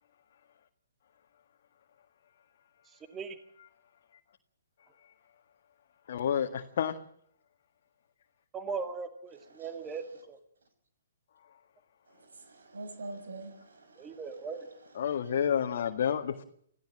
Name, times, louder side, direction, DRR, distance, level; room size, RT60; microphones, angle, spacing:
voice 1, 2.9-3.4 8.5-10.4 14.0-14.7, right 5 dB, 20° right, 8 dB, 2.2 m, -39 dB
voice 2, 6.1-6.9 15.0-16.4, left 8 dB, 60° left, 3 dB, 1.9 m, -29 dB
voice 3, 12.1-14.2 15.0-15.4, right 2 dB, 80° right, 8 dB, 6.6 m, -46 dB
26.0 x 16.0 x 7.5 m, 0.63 s
hypercardioid pair, 135°, 0 cm